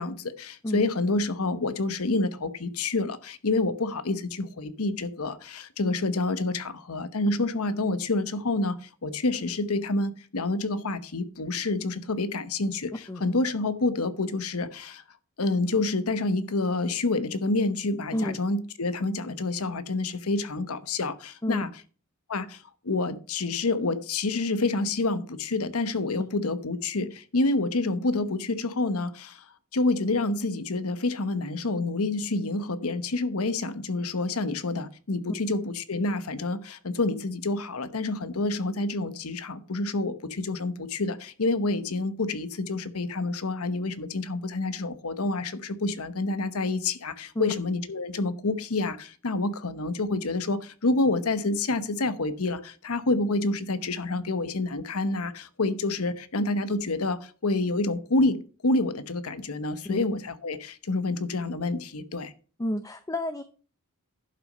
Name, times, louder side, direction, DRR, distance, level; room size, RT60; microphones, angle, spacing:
voice 1, 0.0-12.9 13.2-15.0 15.4-21.7 22.3-29.4 29.7-62.3, left 2 dB, 85° left, 1.0 m, -28 dB
voice 2, 62.6-63.4, left 1 dB, 15° left, 0.6 m, -29 dB
11.0 x 6.1 x 5.4 m
head